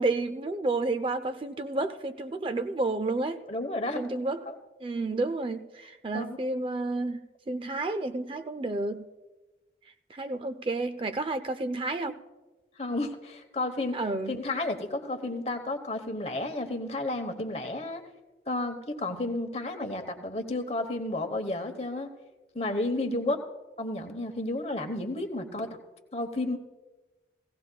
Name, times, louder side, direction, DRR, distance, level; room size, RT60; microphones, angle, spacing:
voice 1, 0.0-3.4 3.9-4.5 4.8-7.2 7.5-9.1 10.1-12.2 13.9-14.4, right 2 dB, 30° right, 10 dB, 0.3 m, -30 dB
voice 2, 3.5-4.0 4.5-4.6 6.1-6.4 12.8-14.0 14.3-18.0 18.5-22.1 22.5-23.4 23.8-25.8 26.1-26.6, left 2 dB, 35° left, 7 dB, 1.0 m, -32 dB
17.5 x 16.5 x 2.3 m, 1.2 s
head